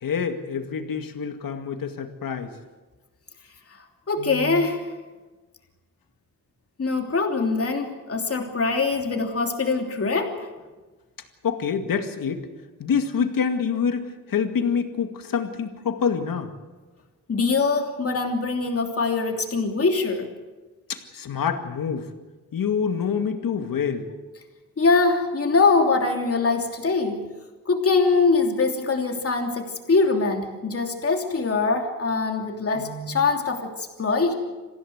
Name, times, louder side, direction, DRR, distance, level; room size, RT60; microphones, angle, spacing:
voice 1, 0.0-2.5 11.4-12.5 12.8-16.5 20.9-22.1 22.5-24.1, left 6 dB, 80° left, 6 dB, 2.2 m, -26 dB
voice 2, 4.1-4.9 6.8-10.5 17.3-20.3 24.8-27.2 27.7-34.3, left 4 dB, 45° left, 3 dB, 3.1 m, -23 dB
27.0 x 15.5 x 8.0 m, 1.3 s
wide cardioid pair, 140°, 33 cm